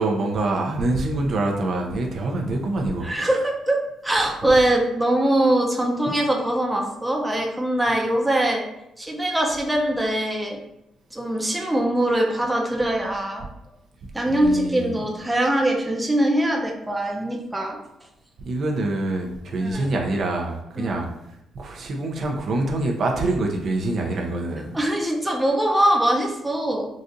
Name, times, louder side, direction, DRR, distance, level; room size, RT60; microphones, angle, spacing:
voice 1, 0.0-3.1 14.2-15.0 18.4-24.7, right 2 dB, 60° right, 1 dB, 0.5 m, -25 dB
voice 2, 3.0-3.8 4.0-8.6 9.0-10.6 11.1-13.4 14.1-17.8 19.6-19.9 20.8-20.9 24.7-26.9, right 1 dB, 10° right, 0 dB, 0.6 m, -22 dB
4.0 x 2.4 x 2.5 m, 0.85 s
cardioid pair, 90°, 0 cm